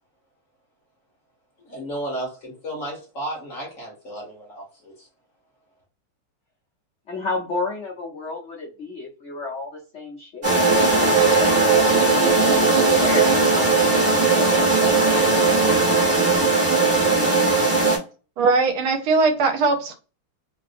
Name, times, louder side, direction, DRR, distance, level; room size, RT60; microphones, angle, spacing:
voice 1, 1.6-5.1, right 1 dB, 45° left, -2 dB, 1.1 m, -33 dB
voice 2, 7.1-10.5 10.8-15.2, left 3 dB, 70° left, -3 dB, 0.6 m, -32 dB
sound 1, 10.4-18.0, right 3 dB, 30° right, 1.4 m, -18 dB
voice 3, 18.4-19.9, right 4 dB, 75° right, 5 dB, 1.5 m, -20 dB
3.5 x 2.6 x 2.5 m, 0.34 s
omnidirectional pair, 2.4 m